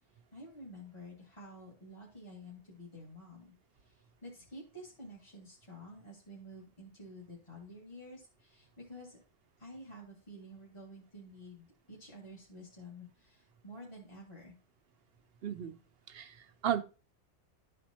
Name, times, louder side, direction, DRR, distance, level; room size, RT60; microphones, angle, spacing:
voice 1, 0.1-3.5 3.8-9.2 9.6-14.5, equal, 25° left, -5 dB, 1.8 m, -50 dB
voice 2, 15.4-15.8 16.1-16.8, right 9 dB, 65° right, 9 dB, 0.7 m, -34 dB
12.5 x 4.3 x 2.8 m, 0.34 s
omnidirectional pair, 1.2 m